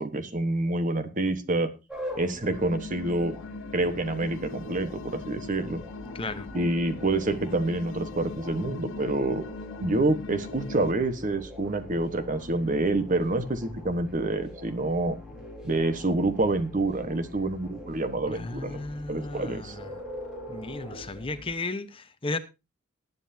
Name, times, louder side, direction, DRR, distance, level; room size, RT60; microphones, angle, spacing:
voice 1, 0.0-1.7 2.2-3.4 3.7-5.8 6.5-9.4 9.8-15.2 15.6-18.8 19.1-19.7, right 2 dB, 40° right, 1.3 m, -27 dB
sound 1, 1.9-21.5, left 1 dB, 5° right, 4.2 m, -43 dB
sound 2, 2.4-10.9, left 3 dB, 70° left, 0.6 m, -41 dB
voice 2, 6.1-6.5 18.3-19.9 20.5-22.4, left 3 dB, 30° left, 0.9 m, -34 dB
19.5 x 9.4 x 2.7 m
head